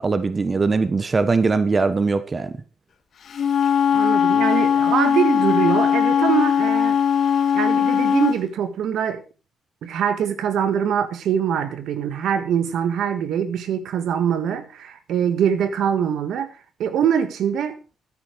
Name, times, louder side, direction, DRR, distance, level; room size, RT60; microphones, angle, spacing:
voice 1, 0.0-2.5, right 4 dB, 30° right, 1.3 m, -21 dB
Wind instrument woodwind instrument, 3.3-8.4, left 8 dB, 55° left, 2.2 m, -19 dB
voice 2, 3.9-7.0 7.5-9.2 9.8-16.5 16.8-17.7, right 8 dB, 75° right, 1.7 m, -23 dB
13.0 x 9.8 x 4.7 m
cardioid pair, 90°, 0 cm